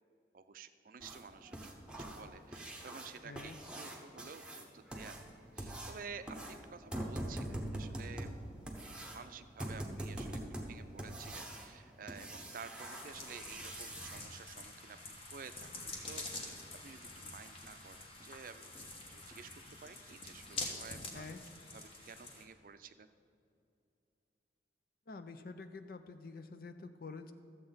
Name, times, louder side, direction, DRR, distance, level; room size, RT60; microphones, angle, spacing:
voice 1, 0.3-5.2 5.5-8.3 8.8-15.0 15.3-15.7 16.1-18.0 18.2-19.5 19.8-21.4 21.7-23.1, right 5 dB, 50° right, 11 dB, 0.4 m, -52 dB
sound 1, 1.0-14.2 16.5-16.6 17.1-17.2 17.6-17.7 18.2-18.3 18.8-18.9 19.3-19.4 19.9-20.0, right 1 dB, 5° right, 0.9 m, -44 dB
voice 2, 3.2-3.6 21.1-21.4 25.1-27.3, left 3 dB, 55° left, 9 dB, 0.5 m, -48 dB
sound 2, 12.8-22.4, left 2 dB, 30° left, 1.2 m, -47 dB
13.0 x 7.6 x 4.0 m, 2.6 s
head